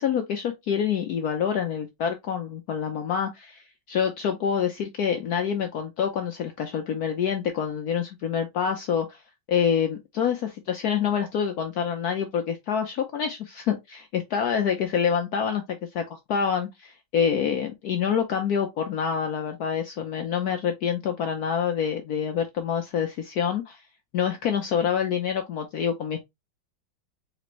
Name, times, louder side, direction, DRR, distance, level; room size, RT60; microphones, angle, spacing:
voice 1, 0.0-9.2 9.5-15.6 15.9-23.8 24.1-26.3, left 7 dB, 70° left, 0.9 m, -27 dB
4.2 x 3.3 x 3.0 m
omnidirectional pair, 2.2 m